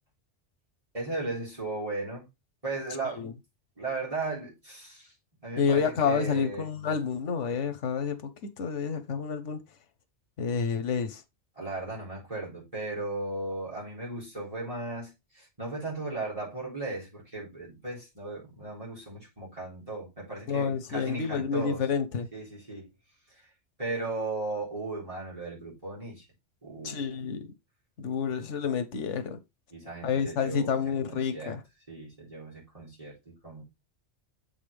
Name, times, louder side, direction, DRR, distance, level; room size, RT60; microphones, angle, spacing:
voice 1, 0.9-2.2 2.6-3.3 3.8-5.1 5.4-6.7 11.6-21.8 22.3-22.9 23.8-26.3 26.6-27.2 29.7-31.6 31.9-33.6, right 2 dB, 30° right, 3.9 m, -36 dB
voice 2, 5.6-8.3 8.6-9.6 10.4-11.2 20.5-22.3 26.8-27.5 28.0-29.4 30.0-31.6, left 6 dB, 90° left, 1.2 m, -29 dB
7.2 x 5.4 x 3.4 m
omnidirectional pair, 1.2 m